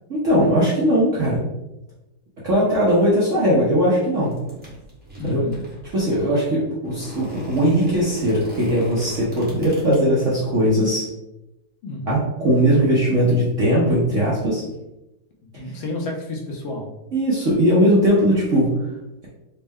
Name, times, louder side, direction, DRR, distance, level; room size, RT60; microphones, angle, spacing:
voice 1, 0.1-1.4 2.4-4.3 5.2-5.4 5.9-11.0 12.1-14.6 17.1-18.7, equal, 55° right, -7 dB, 0.8 m, -19 dB
sound 1, 4.1-6.2 6.8-10.0, right 1 dB, 10° right, 0.6 m, -38 dB
voice 2, 5.2-5.6 11.8-12.2 15.6-16.9, left 2 dB, 75° left, 0 dB, 1.5 m, -31 dB
4.2 x 2.1 x 3.4 m, 0.95 s
omnidirectional pair, 2.2 m